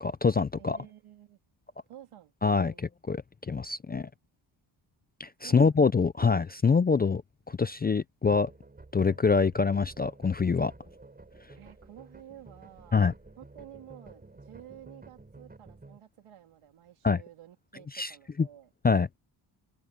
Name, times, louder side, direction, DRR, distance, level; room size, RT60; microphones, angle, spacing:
voice 1, 0.0-0.8 2.4-4.1 5.2-7.2 7.5-8.5 8.9-10.7 12.9-13.1 17.0-17.2 17.9-18.1 18.8-19.1, left 5 dB, 20° left, 0.3 m, -25 dB
voice 2, 0.6-1.4 1.9-2.9 5.4-5.9 11.6-13.1 13.4-18.7, right 11 dB, 85° right, 3.3 m, -51 dB
sound 1, 8.3-16.0, right 3 dB, 20° right, 7.4 m, -52 dB
open air
wide cardioid pair, 145°, 49 cm